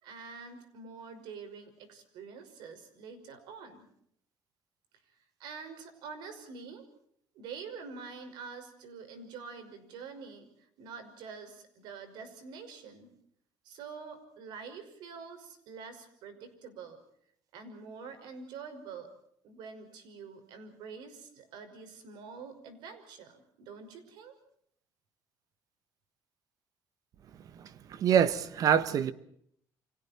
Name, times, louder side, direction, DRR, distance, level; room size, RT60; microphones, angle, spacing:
voice 1, 0.0-3.8 5.4-6.8 7.3-10.5 10.8-13.1 13.6-17.0 17.5-19.1 19.4-24.3, right 5 dB, 80° right, 5.6 m, -46 dB
voice 2, 27.9-29.1, right 8 dB, 55° right, 1.4 m, -25 dB
30.0 x 25.5 x 4.4 m
cardioid pair, 130°, 7 cm